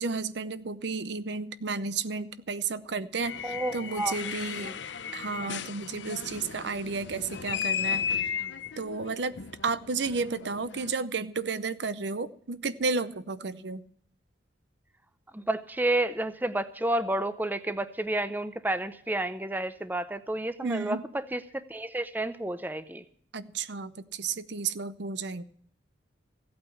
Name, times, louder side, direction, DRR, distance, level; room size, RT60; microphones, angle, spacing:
voice 1, 0.0-4.7 5.1-8.3 8.8-9.4 9.6-13.8 20.6-21.1 23.3-25.4, right 4 dB, 60° right, 15 dB, 0.7 m, -32 dB
sound 1, 3.2-10.9, left 7 dB, 70° left, 0.7 m, -35 dB
voice 2, 3.4-4.2 4.5-4.8 15.3-23.0, right 1 dB, 10° right, 12 dB, 0.6 m, -30 dB
15.5 x 8.7 x 7.1 m, 0.62 s
head